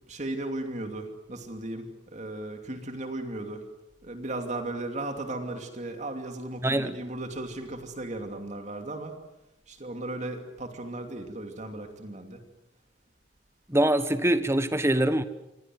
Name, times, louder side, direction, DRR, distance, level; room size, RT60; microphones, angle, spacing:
voice 1, 0.1-3.6 4.0-9.1 9.7-12.4, right 2 dB, 40° right, 5 dB, 2.7 m, -36 dB
voice 2, 6.6-7.0 13.7-15.2, right 1 dB, 15° right, 12 dB, 1.2 m, -24 dB
27.5 x 24.5 x 7.8 m, 0.94 s
head